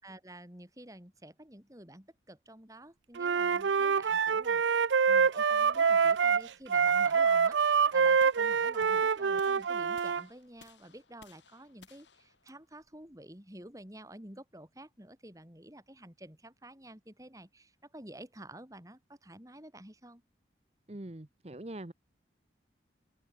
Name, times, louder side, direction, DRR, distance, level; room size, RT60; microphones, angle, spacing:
voice 1, 0.0-4.6 5.0-7.6 7.9-20.2, right 1 dB, 20° right, 3.3 m, -50 dB
Wind instrument woodwind instrument, 3.2-10.2, right 6 dB, 85° right, 0.5 m, -26 dB
sound 1, 8.2-14.3, left 5 dB, 85° left, 5.3 m, -61 dB
voice 2, 20.9-21.9, right 1 dB, 35° right, 1.1 m, -43 dB
head